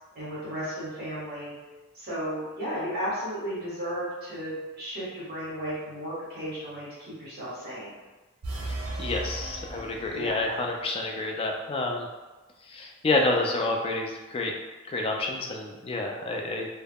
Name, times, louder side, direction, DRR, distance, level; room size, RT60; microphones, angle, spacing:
voice 1, 0.1-1.5 1.9-7.9 10.1-10.4, equal, 50° right, -9 dB, 1.0 m, -34 dB
sound 1, 8.4-10.7, right 2 dB, 85° right, 0.5 m, -36 dB
voice 2, 8.6-12.1 12.6-14.5 14.9-16.7, left 2 dB, 25° left, 1 dB, 0.3 m, -29 dB
2.3 x 2.0 x 3.3 m, 1.2 s
head